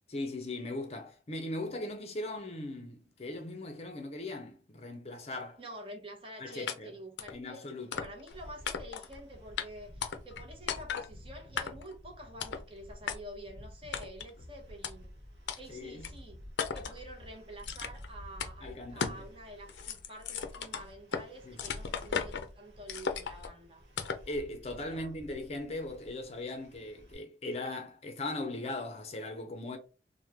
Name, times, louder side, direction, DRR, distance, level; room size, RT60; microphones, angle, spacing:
voice 1, 0.1-5.6 6.4-6.9 7.3-8.1 15.7-16.1 18.6-19.3 21.4-21.6 24.3-29.8, left 2 dB, 35° left, 0.5 m, -39 dB
voice 2, 5.6-7.6 8.0-15.1 15.6-16.4 16.7-23.8 24.8-25.1, right 1 dB, 30° right, 0.7 m, -48 dB
sound 1, 6.7-6.8 7.2-7.4 7.9-8.3 8.6-9.1 9.6-9.7 10.0-10.4 10.7-11.1 11.6-11.9 12.4-12.6 13.1-13.2 13.9-14.3 14.8-14.9 15.5-15.6 16.0-16.1 16.6-17.0 17.6-18.1 18.4-18.5 19.0-19.2 19.6-21.3 21.6-22.5 22.9-23.5 24.0-24.3, left 6 dB, 85° left, 0.4 m, -36 dB
sound 2, 8.3-27.1, equal, 70° right, 1.1 m, -51 dB
3.0 x 2.1 x 3.4 m
head